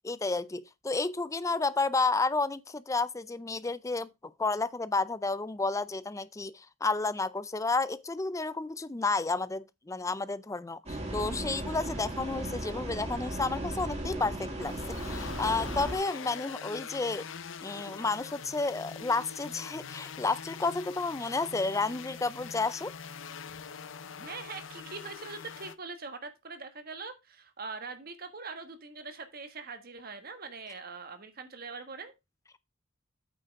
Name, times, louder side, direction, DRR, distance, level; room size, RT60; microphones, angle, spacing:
voice 1, 0.0-4.1 4.4-17.2 17.6-22.9, left 3 dB, 15° left, 0.4 m, -31 dB
sound 1, 10.9-16.0, right 1 dB, 35° right, 2.4 m, -36 dB
sound 2, 14.6-25.7, left 6 dB, 70° left, 0.7 m, -43 dB
voice 2, 24.0-32.1, right 4 dB, 50° right, 1.5 m, -42 dB
8.6 x 5.6 x 4.7 m
head